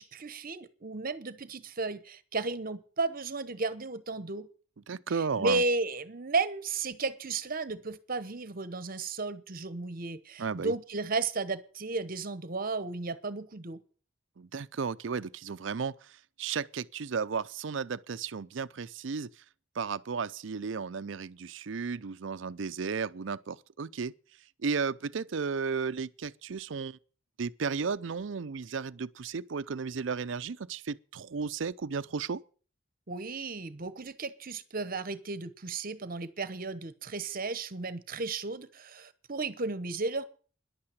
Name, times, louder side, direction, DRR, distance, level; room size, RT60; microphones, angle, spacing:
voice 1, 0.0-4.5 5.1-13.8 33.1-40.2, right 3 dB, 45° right, 1.0 m, -34 dB
voice 2, 4.9-5.6 10.4-10.7 14.4-19.4 19.7-24.1 24.6-27.0 27.4-32.4, right 5 dB, 70° right, 0.5 m, -34 dB
11.0 x 8.7 x 7.9 m
head